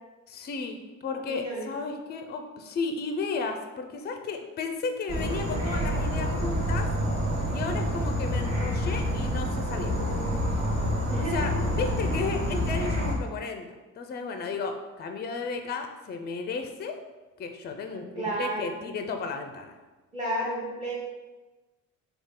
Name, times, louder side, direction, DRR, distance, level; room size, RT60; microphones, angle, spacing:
voice 1, 0.3-6.9 7.5-9.9 11.2-17.0 17.4-19.8, left 4 dB, 35° left, 5 dB, 0.4 m, -34 dB
voice 2, 1.3-1.7 11.1-11.5 12.0-12.2 17.9-18.8 20.1-20.9, right 1 dB, 20° right, -7 dB, 0.8 m, -32 dB
Insect / Frog, 5.1-13.2, equal, 60° right, 1.3 m, -28 dB
3.6 x 2.3 x 3.7 m, 1.2 s
cardioid pair, 90°, 30 cm